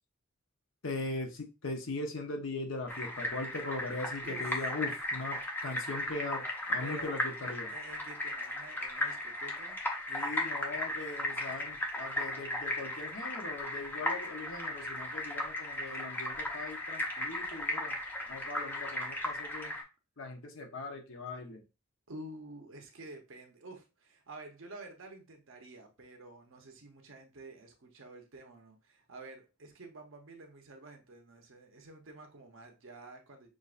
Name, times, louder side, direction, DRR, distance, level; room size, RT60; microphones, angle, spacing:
voice 1, 0.8-7.7 10.1-18.0 18.3-19.8 20.2-21.6, left 2 dB, 65° left, 0.9 m, -40 dB
sound 1, 2.9-19.8, left 1 dB, 10° left, 0.7 m, -36 dB
voice 2, 4.2-4.7 6.8-7.1 7.7-9.8 15.9-16.0 22.1-33.5, right 2 dB, 65° right, 0.9 m, -50 dB
6.1 x 2.6 x 2.5 m
head